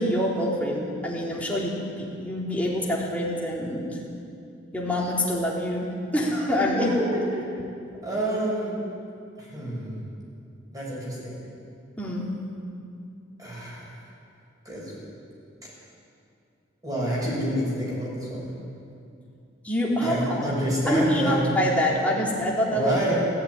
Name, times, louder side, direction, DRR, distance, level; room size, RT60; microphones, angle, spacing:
voice 1, 0.0-4.0 4.7-6.9 12.0-12.3 19.6-20.5 20.9-22.9, equal, 5° left, -5 dB, 4.0 m, -26 dB
voice 2, 6.9-7.6 8.0-8.7 9.4-10.0 10.7-11.4 13.4-13.9 14.7-14.9 16.8-18.5 20.0-21.5 22.7-23.2, right 1 dB, 20° right, -5 dB, 7.1 m, -28 dB
17.5 x 16.5 x 10.0 m, 2.6 s
head